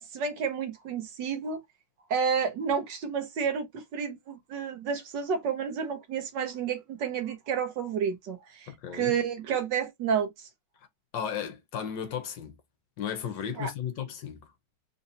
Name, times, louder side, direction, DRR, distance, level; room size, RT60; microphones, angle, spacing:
voice 1, 0.1-1.6 2.1-10.5 13.6-13.7, right 6 dB, 65° right, 1.2 m, -30 dB
voice 2, 8.7-9.2 11.1-12.5 13.0-14.5, left 8 dB, 70° left, 1.3 m, -35 dB
3.8 x 2.7 x 2.7 m
omnidirectional pair, 2.3 m